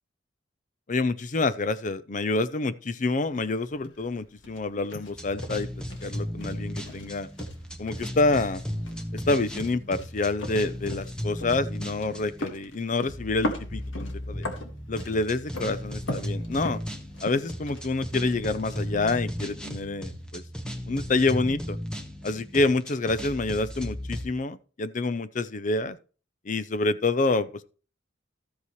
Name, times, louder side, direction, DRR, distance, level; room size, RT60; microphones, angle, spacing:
voice 1, 0.9-5.7 6.0-7.3 7.8-8.6 9.1-14.4 14.9-16.8 17.2-20.4 20.9-21.8 22.2-26.0 26.5-27.6, left 3 dB, 40° left, 0.5 m, -27 dB
sound 1, 3.3-20.3, left 1 dB, 80° left, 1.8 m, -41 dB
sound 2, 5.1-12.4 13.1-24.3, equal, 5° left, 1.0 m, -36 dB
13.0 x 8.4 x 3.1 m
head